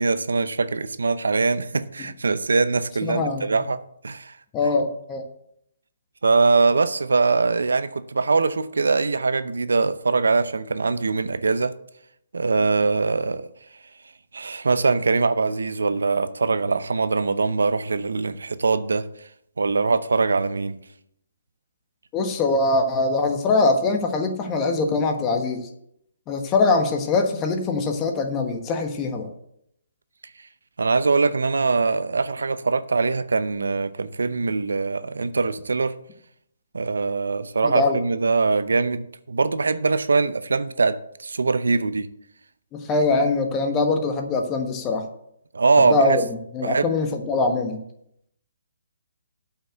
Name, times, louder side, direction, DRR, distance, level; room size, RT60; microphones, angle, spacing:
voice 1, 0.0-3.8 4.0-4.3 6.2-11.7 12.3-13.5 14.3-19.1 19.6-20.8 30.8-36.0 36.7-42.1 45.5-46.2 46.6-46.9, right 4 dB, 85° right, 13 dB, 0.7 m, -22 dB
voice 2, 3.0-3.5 4.5-5.3 22.1-25.7 26.3-29.3 37.6-38.0 42.7-45.1 45.9-47.8, left 3 dB, 20° left, 4 dB, 1.3 m, -23 dB
8.1 x 5.9 x 7.8 m, 0.74 s
hypercardioid pair, 155°, 0 cm